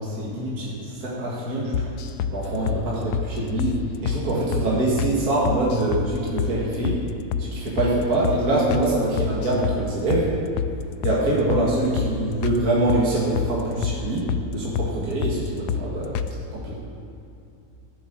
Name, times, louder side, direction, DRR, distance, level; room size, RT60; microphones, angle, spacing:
voice 1, 0.0-1.9 2.3-7.0 7.4-10.3 11.0-16.2 16.5-16.8, right 1 dB, 65° right, -5 dB, 2.3 m, -24 dB
sound 1, 1.7-2.4 2.7-2.8 3.1-3.3 3.6-3.8 4.1-4.2 4.5-4.7 5.0-5.1 5.5-6.1 6.4-6.5 6.8-7.0 7.3-7.5 7.8-7.9 8.2-8.4 8.7-8.9 9.2-9.8 10.1-10.3 10.6-10.7 11.0-11.2 11.5-11.7 12.0-12.1 12.4-12.6 12.9-13.5 13.8-14.0 14.3-14.5 14.8-14.9 15.2-15.4 15.7-15.8 16.1-16.3, left 8 dB, 80° left, 1.1 m, -26 dB
17.0 x 7.7 x 4.6 m, 2.7 s
omnidirectional pair, 1.7 m